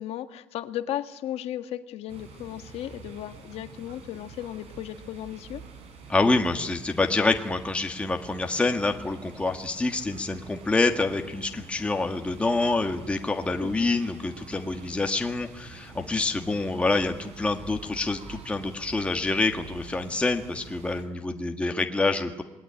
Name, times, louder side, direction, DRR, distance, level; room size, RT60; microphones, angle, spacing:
voice 1, 0.0-5.6 13.6-13.9, left 12 dB, 50° left, 9 dB, 1.6 m, -35 dB
sound 1, 2.1-21.0, right 5 dB, 55° right, 5.1 m, -46 dB
voice 2, 6.1-22.4, left 3 dB, 10° left, 4 dB, 1.6 m, -26 dB
26.5 x 20.5 x 9.8 m, 1.1 s
cardioid pair, 145°, 13 cm